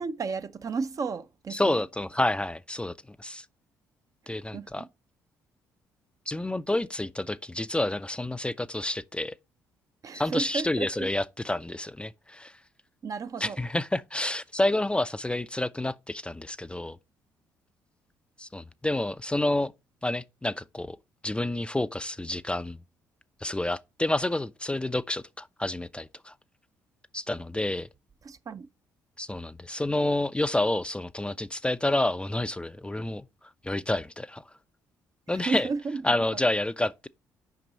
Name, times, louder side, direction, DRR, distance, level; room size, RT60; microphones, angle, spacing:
voice 1, 0.0-1.8 4.5-4.9 10.0-11.1 13.0-13.6 28.2-28.7 35.5-36.2, right 4 dB, 40° right, 0.5 m, -33 dB
voice 2, 1.5-2.9 3.2-3.4 4.3-4.9 6.3-9.3 10.1-12.5 13.4-17.0 18.4-19.7 20.0-21.0 21.2-22.8 23.4-26.3 27.1-27.9 29.2-33.2 33.6-34.4 35.3-35.7 36.0-37.1, left 1 dB, 10° left, 0.4 m, -29 dB
5.8 x 5.3 x 4.0 m
hypercardioid pair, 50°, 9 cm